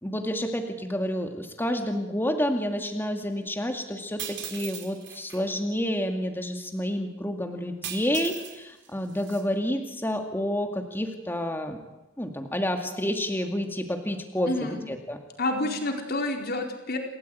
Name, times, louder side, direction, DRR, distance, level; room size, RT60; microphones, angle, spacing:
voice 1, 0.0-11.8 12.2-15.2, equal, 10° left, 4 dB, 2.2 m, -29 dB
sound 1, 4.2-5.4 7.8-8.6 8.9-9.4, right 10 dB, 60° right, 4.7 m, -38 dB
voice 2, 14.5-14.8 15.4-17.0, left 2 dB, 50° left, 3 dB, 4.5 m, -28 dB
28.5 x 18.0 x 9.4 m, 0.99 s
head